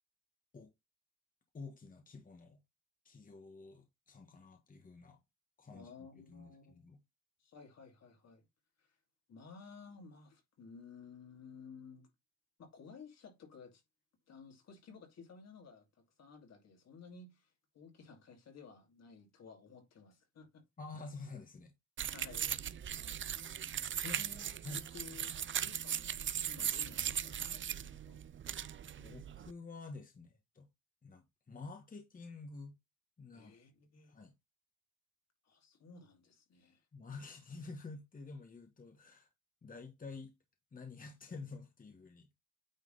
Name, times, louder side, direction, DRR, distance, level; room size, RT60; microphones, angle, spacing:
voice 1, 1.5-2.6 3.0-5.2 5.6-7.0 20.8-21.7 24.0-24.2 24.6-24.8 28.5-28.7 29.0-30.7 31.0-32.8 33.2-33.5 34.1-34.3 36.9-39.3 39.6-40.3 40.7-42.3, left 3 dB, 30° left, 1.4 m, -49 dB
voice 2, 5.7-6.8 7.4-8.5 8.8-9.0 9.3-12.1 12.6-13.8 14.3-20.6 22.1-22.5 22.9-23.3 24.0-28.2 33.3-34.1 35.4-36.9, left 5 dB, 60° left, 2.7 m, -55 dB
sound 1, 22.0-29.5, right 9 dB, 40° right, 0.6 m, -39 dB
9.1 x 3.6 x 3.9 m
cardioid pair, 90°, 30 cm